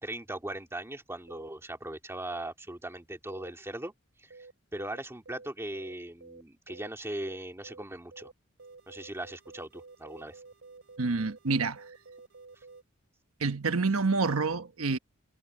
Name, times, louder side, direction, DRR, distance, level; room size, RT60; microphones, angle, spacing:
voice 1, 0.0-3.9 4.2-4.4 4.7-8.3 8.9-10.4, right 1 dB, 15° right, 2.0 m, -39 dB
sound 1, 1.3-1.5 2.3-2.5 3.3-3.5 4.3-4.5 4.8-5.0 5.3-5.5 5.7-5.9 6.2-6.4 6.7-6.9 7.2-7.4 7.6-7.8 8.1-8.3 8.6-12.8, right 3 dB, 65° right, 3.3 m, -51 dB
voice 2, 11.0-11.8 13.4-15.0, right 4 dB, 85° right, 1.1 m, -28 dB
head